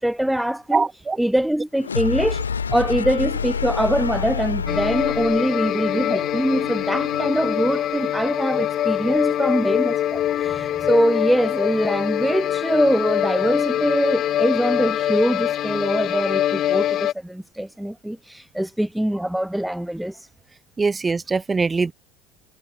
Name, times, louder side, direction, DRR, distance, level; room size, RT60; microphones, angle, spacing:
voice 1, 0.0-0.9 1.2-2.4 2.7-20.3, right 1 dB, 5° right, 3.8 m, -23 dB
voice 2, 0.7-1.2 10.4-10.5 20.8-21.9, right 4 dB, 20° right, 7.4 m, -22 dB
sound 1, 1.8-7.6, left 6 dB, 85° left, 5.9 m, -28 dB
sound 2, 4.7-17.1, left 12 dB, 45° left, 2.6 m, -24 dB
figure-of-eight pair, 70°, 0 cm